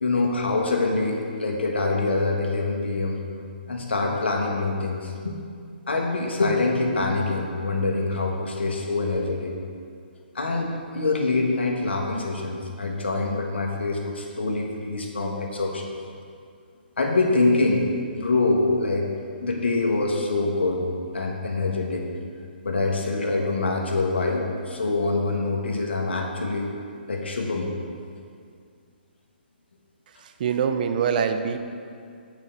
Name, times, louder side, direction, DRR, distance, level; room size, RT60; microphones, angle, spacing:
voice 1, 0.0-3.2 3.7-5.4 5.9-9.5 10.3-15.9 17.0-19.1 19.4-20.8 21.1-22.1 22.6-26.7 27.1-27.7, left 3 dB, 80° left, 0 dB, 1.4 m, -25 dB
voice 2, 30.4-31.6, right 7 dB, 50° right, 7 dB, 0.6 m, -23 dB
8.8 x 4.6 x 5.3 m, 2.3 s
hypercardioid pair, 135°, 6 cm